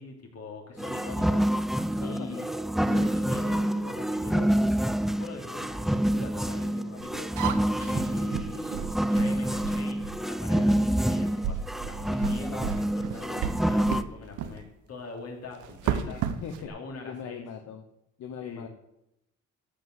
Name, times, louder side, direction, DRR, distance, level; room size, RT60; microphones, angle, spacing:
voice 1, 0.0-1.5 2.0-2.5 2.9-4.5 5.1-7.3 7.8-8.8 9.1-16.2 16.6-17.5 18.4-18.7, left 3 dB, 55° left, 1 dB, 3.2 m, -42 dB
sound 1, 0.8-14.0, right 1 dB, ahead, 0.4 m, -27 dB
voice 2, 1.9-2.5 16.0-16.7 17.0-17.8 18.2-18.7, left 7 dB, 75° left, 6 dB, 1.1 m, -40 dB
sound 2, 7.0-10.3 10.9-11.1 11.4-14.1 14.4-14.6 15.6-16.7, right 8 dB, 85° right, 1.0 m, -33 dB
13.5 x 5.1 x 8.0 m, 0.85 s
cardioid pair, 90°, 30 cm